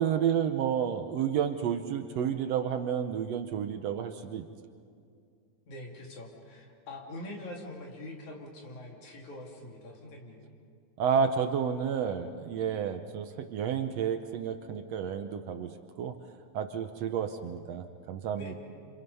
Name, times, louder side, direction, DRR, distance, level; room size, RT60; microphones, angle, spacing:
voice 1, 0.0-4.5 11.0-16.2 16.5-18.6, right 8 dB, 70° right, 7 dB, 1.8 m, -31 dB
voice 2, 5.7-10.4 18.4-18.6, left 1 dB, 75° left, 0 dB, 4.2 m, -44 dB
29.0 x 27.0 x 5.5 m, 2.3 s
omnidirectional pair, 3.4 m